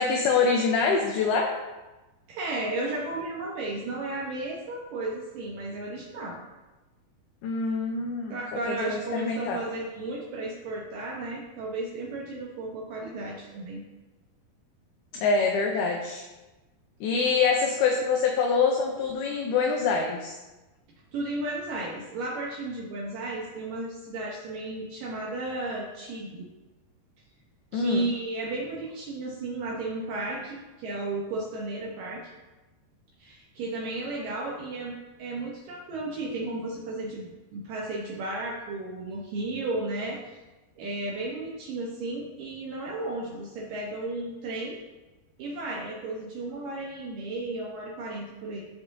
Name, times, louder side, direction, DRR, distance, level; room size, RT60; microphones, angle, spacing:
voice 1, 0.0-1.5 7.4-8.4 8.7-9.6 15.1-16.3 17.0-20.4 27.7-28.1, left 5 dB, 80° left, 1 dB, 2.5 m, -25 dB
voice 2, 2.3-6.4 8.3-13.8 21.1-26.5 27.7-32.2 33.2-34.9 35.2-40.2 40.8-44.8 45.4-48.6, right 2 dB, 75° right, -3 dB, 2.1 m, -34 dB
13.5 x 4.9 x 2.7 m, 1.1 s
omnidirectional pair, 4.8 m